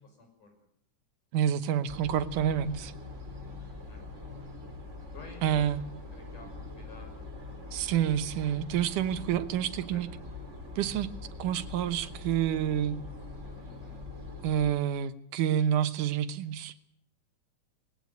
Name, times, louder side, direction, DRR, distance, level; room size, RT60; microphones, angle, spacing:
voice 1, 0.0-0.6 3.9-4.0 5.1-5.7 6.1-7.2 8.0-8.2 9.9-10.0 13.6-14.0, left 3 dB, 80° left, 4 dB, 7.5 m, -52 dB
voice 2, 1.3-2.9 5.4-5.8 7.7-10.1 10.8-11.1 11.4-13.0 14.4-16.7, right 10 dB, 90° right, 12 dB, 2.6 m, -28 dB
sound 1, 1.9-14.7, left 3 dB, 25° right, 3.3 m, -43 dB
20.0 x 17.0 x 9.6 m, 0.72 s
omnidirectional pair, 3.5 m